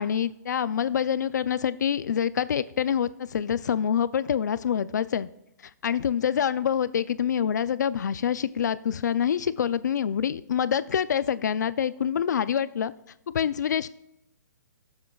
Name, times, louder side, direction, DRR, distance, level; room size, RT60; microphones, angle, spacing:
voice 1, 0.0-5.3 5.8-12.9 13.3-13.9, left 8 dB, 70° left, 15 dB, 0.5 m, -26 dB
18.5 x 7.4 x 2.3 m, 0.85 s
hypercardioid pair, 175°, 10 cm